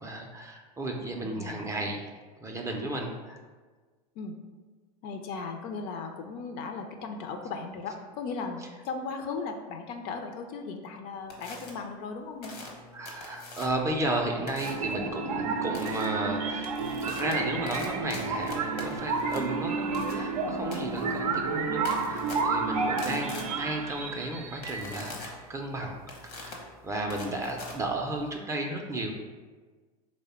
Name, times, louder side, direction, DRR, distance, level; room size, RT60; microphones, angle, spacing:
voice 1, 0.0-3.4 8.6-8.7 12.9-16.7 17.0-29.1, right 1 dB, 15° right, 1 dB, 0.4 m, -34 dB
voice 2, 5.0-12.6 22.7-23.2, left 4 dB, 50° left, 5 dB, 0.4 m, -37 dB
sound 1, 11.3-11.7 12.4-13.9 14.5-14.9 15.7-16.0 16.5-28.4, left 3 dB, 80° left, 1.0 m, -44 dB
sound 2, 14.6-25.2, right 4 dB, 80° right, 0.5 m, -31 dB
3.2 x 2.1 x 4.2 m, 1.4 s
hypercardioid pair, 95°, 20 cm